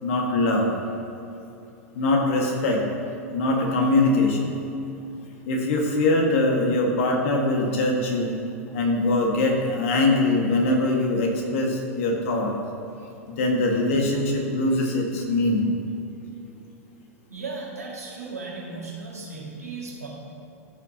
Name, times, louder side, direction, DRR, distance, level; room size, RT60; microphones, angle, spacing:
voice 1, 0.0-0.7 1.9-2.9 3.3-4.6 5.4-8.4 8.7-12.5 13.3-15.7, left 2 dB, 60° left, 1 dB, 1.5 m, -22 dB
voice 2, 17.3-20.1, right 3 dB, 85° right, -4 dB, 2.0 m, -36 dB
14.0 x 5.9 x 2.8 m, 2.8 s
figure-of-eight pair, 90°, 8 cm